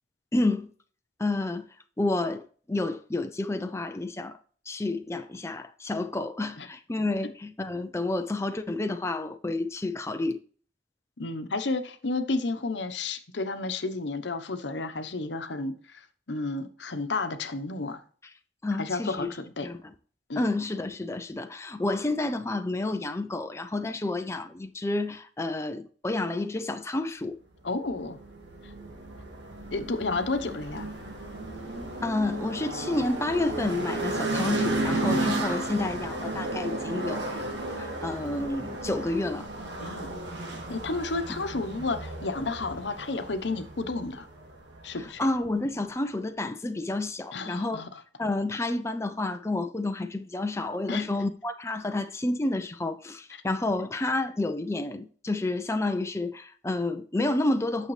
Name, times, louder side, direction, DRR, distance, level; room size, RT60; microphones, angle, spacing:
voice 1, 0.3-0.7 1.2-1.7 2.0-4.4 4.7-10.4 18.6-19.3 19.6-19.8 20.4-27.4 32.0-39.5 45.2-47.8 48.2-57.9, left 2 dB, 15° left, 0.5 m, -30 dB
voice 2, 11.2-16.0 16.3-18.0 18.8-19.7 20.3-20.5 27.6-28.2 28.6-28.7 29.7-30.9 39.8-40.2 40.7-44.3 44.8-45.3 47.3-48.0 50.9-51.0 53.3-53.4, left 3 dB, 80° left, 1.0 m, -31 dB
sound 1, 27.8-45.3, right 2 dB, 80° right, 2.1 m, -33 dB
8.8 x 6.5 x 3.2 m
head